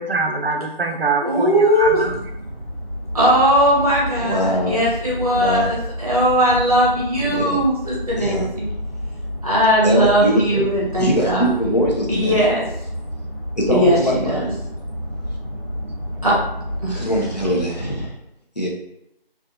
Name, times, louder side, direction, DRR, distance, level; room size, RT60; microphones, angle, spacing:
voice 1, 0.0-2.2 16.2-16.4, right 3 dB, 75° right, 4 dB, 0.5 m, -23 dB
voice 2, 1.2-2.0 3.1-8.7 9.4-11.8 12.1-12.6 13.7-14.5 16.2-16.3 16.8-17.1, equal, 40° right, -4 dB, 0.8 m, -19 dB
sound 1, 1.8-18.1, equal, 25° right, 1.2 m, -31 dB
voice 3, 4.2-4.8 5.4-5.7 7.2-7.6 8.1-8.5 9.8-10.7 11.0-12.4 13.6-14.5 16.9-18.1 18.6-18.7, equal, 45° left, -3 dB, 0.6 m, -22 dB
2.4 x 2.3 x 2.7 m, 0.79 s
figure-of-eight pair, 170°, 29 cm